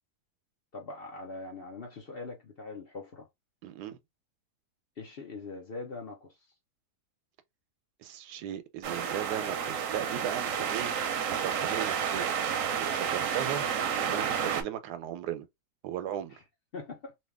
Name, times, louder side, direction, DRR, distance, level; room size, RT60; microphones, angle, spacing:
voice 1, 0.7-3.3 5.0-6.3 16.7-17.1, left 3 dB, 50° left, 0.7 m, -42 dB
voice 2, 3.6-4.0 8.0-12.4 12.8-15.5 15.8-16.4, right 10 dB, 90° right, 1.2 m, -37 dB
sound 1, 8.8-14.6, right 7 dB, 65° right, 0.9 m, -30 dB
2.8 x 2.8 x 3.3 m
omnidirectional pair, 1.7 m